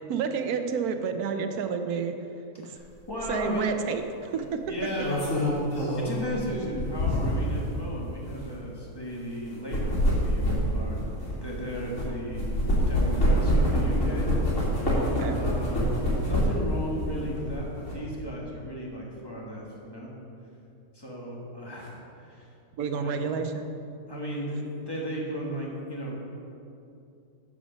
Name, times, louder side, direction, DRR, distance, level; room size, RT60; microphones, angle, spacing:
voice 1, 0.1-2.1 2.6-2.8 3.3-4.9 15.2-15.4 22.8-23.7, right 6 dB, 75° right, 7 dB, 1.2 m, -30 dB
voice 2, 2.6-3.9 4.3-4.4 4.7-5.3 5.8-12.5 12.9-14.3 15.3-15.8 16.2-20.1 20.9-22.5 22.9-23.2 24.1-26.1, equal, 15° left, -3 dB, 1.5 m, -35 dB
sound 1, 3.2-3.4 4.7-7.6 8.2-8.4 9.5-12.1 12.4-16.7 17.1-17.9, equal, 55° left, 2.7 m, -26 dB
12.0 x 5.1 x 5.2 m, 2.7 s
omnidirectional pair, 1.6 m